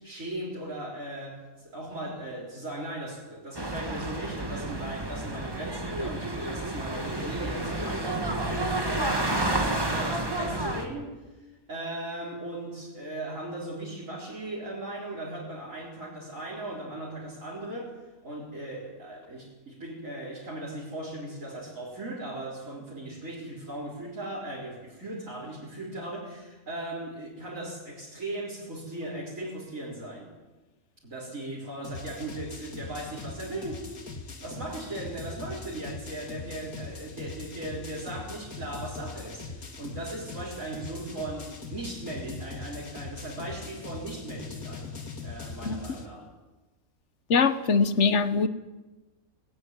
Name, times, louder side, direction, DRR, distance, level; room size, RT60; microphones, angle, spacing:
voice 1, 0.0-11.1 11.7-17.9 18.2-30.3 31.0-33.8 34.4-44.9 45.2-46.3, right 1 dB, 65° right, 4.6 m, -38 dB
sound 1, 3.5-10.9, right 1 dB, 15° right, 1.8 m, -30 dB
sound 2, 31.8-46.1, left 4 dB, 80° left, 2.5 m, -41 dB
voice 2, 47.3-48.5, left 5 dB, 55° left, 1.4 m, -22 dB
19.5 x 14.5 x 9.6 m
omnidirectional pair, 1.5 m